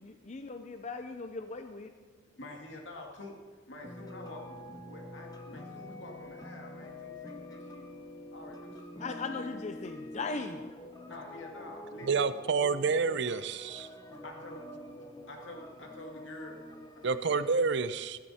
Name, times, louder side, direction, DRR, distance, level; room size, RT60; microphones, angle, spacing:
voice 1, 0.0-1.9 9.0-10.7, left 3 dB, 40° left, 8 dB, 0.6 m, -38 dB
voice 2, 2.0-3.4 3.7-7.9 8.3-9.4 11.1-12.1 13.8-14.7 15.3-16.6 17.0-17.4, left 2 dB, 75° left, 1 dB, 2.3 m, -48 dB
sound 1, 3.8-17.6, left 1 dB, 20° left, 1.0 m, -46 dB
voice 3, 12.1-13.9 17.0-18.2, right 4 dB, 65° right, 14 dB, 0.6 m, -29 dB
14.0 x 13.0 x 4.3 m, 1.4 s
head